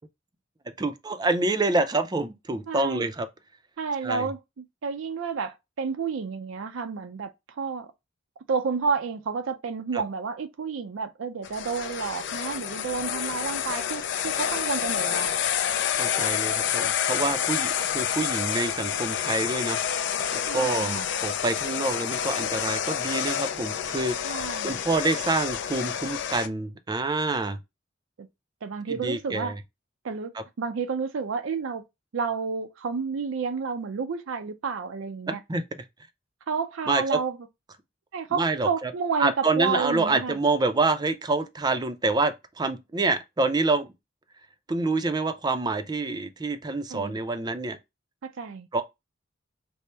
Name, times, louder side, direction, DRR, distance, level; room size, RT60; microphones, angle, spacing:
voice 1, 0.8-3.3 4.0-4.3 9.9-10.0 16.0-19.8 20.3-27.6 28.9-29.6 35.3-35.6 36.9-37.2 38.3-38.9 39.2-43.9 44.7-47.8 48.7-48.8, right 3 dB, 20° right, 0.4 m, -27 dB
voice 2, 2.7-3.1 3.8-7.3 7.6-7.9 8.5-15.4 20.5-21.1 24.2-24.8 28.2-28.3 28.6-29.6 30.0-31.8 32.1-35.4 36.5-37.4 38.1-40.4 46.9-47.2 48.2-48.7, right 5 dB, 85° right, 0.4 m, -30 dB
sound 1, 11.4-26.5, left 9 dB, 65° left, 0.4 m, -28 dB
4.3 x 2.0 x 3.2 m
head